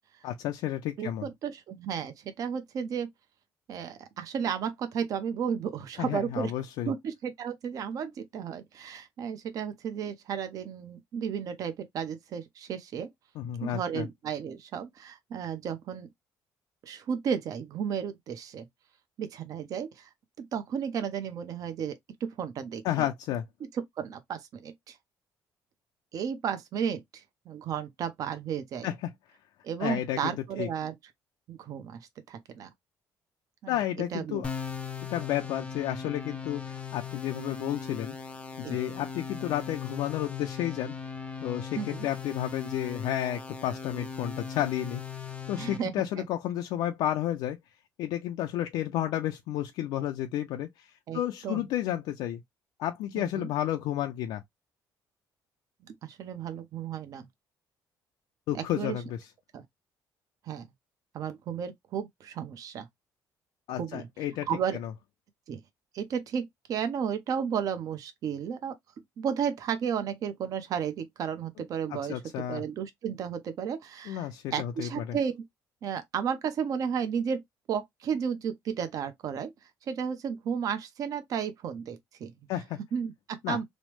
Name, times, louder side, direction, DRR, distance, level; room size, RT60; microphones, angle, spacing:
voice 1, 0.2-1.3 6.0-6.9 13.4-14.1 22.8-23.4 28.8-29.1 29.8-30.7 33.7-34.5 35.1-38.2 38.6-41.0 41.4-45.0 45.5-47.6 48.0-52.4 52.8-54.4 58.5-59.3 63.7-64.5 64.7-64.9 71.9-72.6 74.1-75.2 82.5-82.8 83.4-83.6, left 12 dB, 85° left, 0.4 m, -31 dB
voice 2, 1.0-3.1 3.7-6.5 6.9-13.1 13.6-16.1 16.8-18.6 19.2-20.1 20.4-23.1 24.0-25.0 26.1-28.9 29.6-30.9 31.5-32.0 32.3-32.7 33.6-33.8 34.1-34.4 38.6-38.8 41.8-42.1 45.6-46.3 51.1-51.6 53.2-53.5 55.9-57.3 58.5-59.0 59.5-59.6 60.4-60.6 61.1-62.9 63.8-64.1 64.5-64.8 65.5-65.6 65.9-68.7 69.2-72.2 72.5-75.4 75.8-77.4 77.7-79.5 79.9-82.3 82.9-83.6, right 7 dB, 55° right, 0.6 m, -33 dB
sound 1, 34.4-45.8, left 6 dB, 15° left, 0.5 m, -39 dB
3.1 x 2.0 x 3.0 m
cardioid pair, 125°, 7 cm